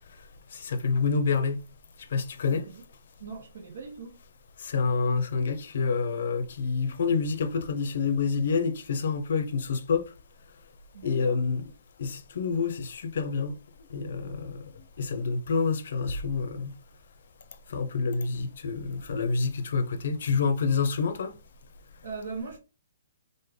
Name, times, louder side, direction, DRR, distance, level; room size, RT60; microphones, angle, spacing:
voice 1, 0.6-1.6 2.1-2.6 4.6-10.0 11.0-11.6 12.0-13.5 13.9-14.6 15.0-16.7 17.7-21.3, left 5 dB, 65° left, 0.5 m, -27 dB
voice 2, 2.5-2.8 3.2-4.1 10.9-11.4 22.0-22.6, right 4 dB, 65° right, 0.8 m, -40 dB
3.2 x 2.1 x 3.4 m
hypercardioid pair, 155°, 0 cm